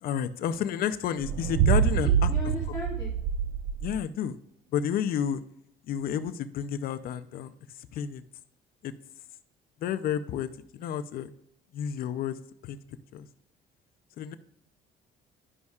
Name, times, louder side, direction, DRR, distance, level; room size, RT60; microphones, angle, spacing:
voice 1, 0.0-2.3 3.8-4.4 4.7-5.4 5.9-7.5 7.9-8.2 8.8-8.9 9.8-11.3 11.7-12.4 12.6-12.8 13.1-13.3 14.2-14.4, left 9 dB, 60° left, 11 dB, 0.5 m, -31 dB
sound 1, 1.2-4.0, right 8 dB, 85° right, 0.4 m, -26 dB
voice 2, 2.0-3.1, left 2 dB, 20° left, -5 dB, 1.6 m, -37 dB
11.0 x 5.3 x 2.4 m, 0.74 s
cardioid pair, 110°, 17 cm